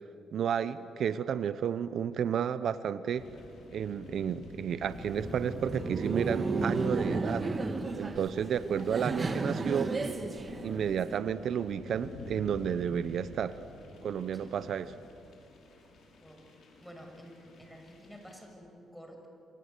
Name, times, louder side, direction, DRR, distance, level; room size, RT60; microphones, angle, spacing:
voice 1, 0.3-3.3 3.7-7.5 8.0-9.9 10.6-13.6 14.0-14.9, right 8 dB, 65° right, 13 dB, 0.8 m, -32 dB
sound 1, 3.1-18.3, left 2 dB, 65° left, 6.5 m, -48 dB
Laughter, 4.9-11.2, right 3 dB, 30° right, 2.0 m, -33 dB
voice 2, 16.8-19.3, equal, 5° left, 2 dB, 7.0 m, -50 dB
28.0 x 25.0 x 8.4 m, 2.7 s
cardioid pair, 90°, 0 cm